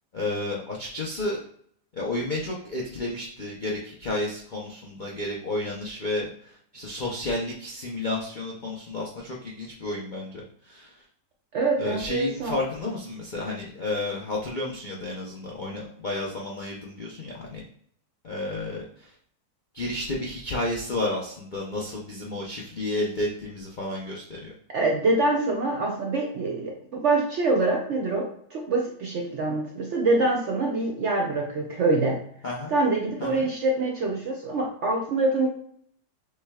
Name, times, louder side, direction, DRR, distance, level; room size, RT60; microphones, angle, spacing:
voice 1, 0.1-1.4 1.9-11.0 11.8-17.6 18.2-19.1 19.7-24.5 32.4-32.7 33.2-33.4, left 2 dB, 60° left, -3 dB, 0.5 m, -31 dB
voice 2, 11.5-12.6 24.7-32.2 32.7-35.5, right 2 dB, 65° right, 0 dB, 0.7 m, -25 dB
6.7 x 3.2 x 2.3 m, 0.63 s
omnidirectional pair, 1.8 m